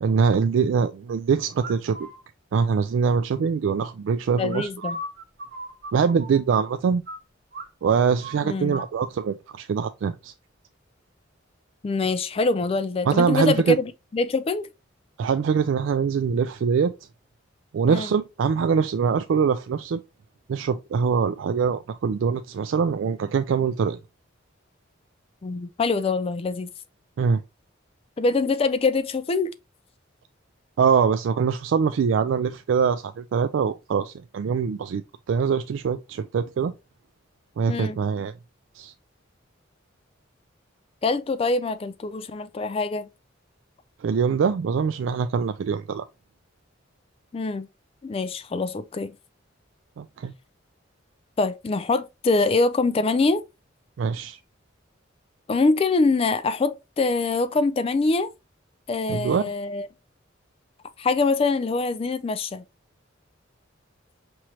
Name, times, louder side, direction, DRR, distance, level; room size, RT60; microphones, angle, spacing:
voice 1, 0.0-2.1 2.5-4.7 5.9-7.0 7.8-10.3 13.1-13.8 15.2-16.9 17.7-20.0 20.5-24.0 27.2-27.4 30.8-35.0 35.3-36.7 37.6-38.3 38.7-38.9 44.0-46.0 50.0-50.3 54.0-54.4 59.1-59.5, right 6 dB, 75° right, 0.3 m, -23 dB
sound 1, 1.6-2.2 4.5-7.2 7.5-7.7 7.9-8.9, right 2 dB, 50° right, 1.0 m, -36 dB
voice 2, 4.4-5.0 8.4-8.8 11.8-14.7 17.9-18.1 25.4-26.7 28.2-29.5 37.7-38.0 41.0-43.1 47.3-47.7 48.0-49.1 51.4-53.4 55.5-58.3 58.9-59.9 61.0-62.6, left 3 dB, 30° left, 0.3 m, -24 dB
6.0 x 3.1 x 2.8 m
head